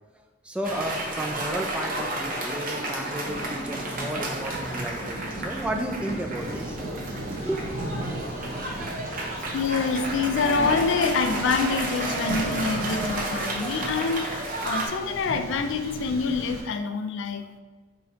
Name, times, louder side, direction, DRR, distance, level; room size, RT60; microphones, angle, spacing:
voice 1, 0.4-6.9 7.4-7.9, right 1 dB, 5° right, 2 dB, 0.3 m, -33 dB
Cheering / Applause, 0.6-14.9, right 1 dB, 45° right, 0.7 m, -32 dB
Thunder, 0.6-16.6, right 1 dB, 90° right, 0.9 m, -37 dB
voice 2, 9.5-17.6, left 4 dB, 70° left, 7 dB, 0.4 m, -26 dB
5.0 x 2.7 x 2.9 m, 1.3 s
head